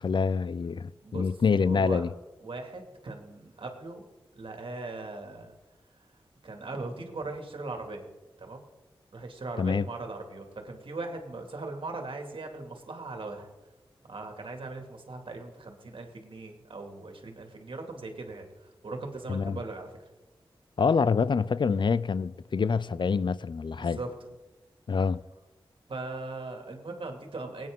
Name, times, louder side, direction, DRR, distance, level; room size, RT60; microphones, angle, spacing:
voice 1, 0.0-2.1 9.6-9.9 19.3-19.6 20.8-24.0 24.9-25.2, left 5 dB, 55° left, 0.5 m, -26 dB
voice 2, 1.6-2.0 2.4-4.1 4.3-5.5 6.4-8.1 8.4-8.6 9.1-13.5 14.1-19.9 23.7-24.1 25.9-27.7, right 3 dB, 65° right, 2.2 m, -39 dB
19.0 x 9.1 x 3.7 m
cardioid pair, 50°, 10 cm